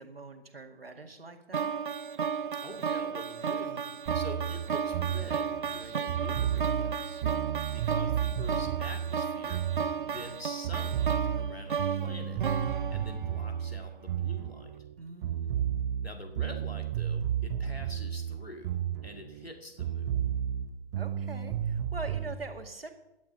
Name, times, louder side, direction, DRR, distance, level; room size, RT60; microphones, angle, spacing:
voice 1, 0.0-1.7 15.0-15.5 21.0-22.9, right 3 dB, 75° right, 5 dB, 2.0 m, -43 dB
sound 1, 1.5-13.7, right 6 dB, 55° right, 0.6 m, -34 dB
voice 2, 2.6-3.8 4.1-7.2 7.7-12.4 12.9-14.7 16.0-20.1, left 1 dB, 85° left, 4 dB, 2.5 m, -46 dB
sound 2, 4.1-10.4 10.6-14.9 15.2-19.5 19.8-22.3, right 9 dB, 20° right, 0.7 m, -32 dB
16.0 x 10.5 x 4.0 m, 0.92 s
figure-of-eight pair, 135°, 30 cm